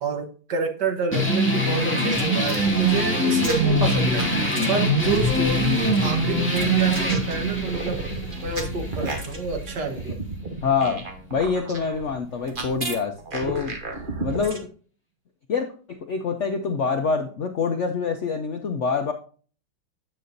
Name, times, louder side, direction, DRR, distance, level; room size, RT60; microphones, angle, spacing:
voice 1, 0.0-4.3 4.7-8.0 8.4-10.2, right 4 dB, 60° right, 5 dB, 1.7 m, -28 dB
sound 1, 1.1-10.2, equal, 5° left, 2.1 m, -23 dB
sound 2, 2.1-5.0 5.9-14.6, right 2 dB, 35° right, 1.0 m, -34 dB
Bicycle, 5.0-10.4, left 1 dB, 90° right, 3.0 m, -38 dB
voice 2, 10.6-11.0 11.3-13.8 14.2-14.6 15.5-19.1, left 5 dB, 75° left, 5 dB, 0.6 m, -26 dB
9.3 x 6.7 x 2.6 m, 0.40 s
omnidirectional pair, 2.1 m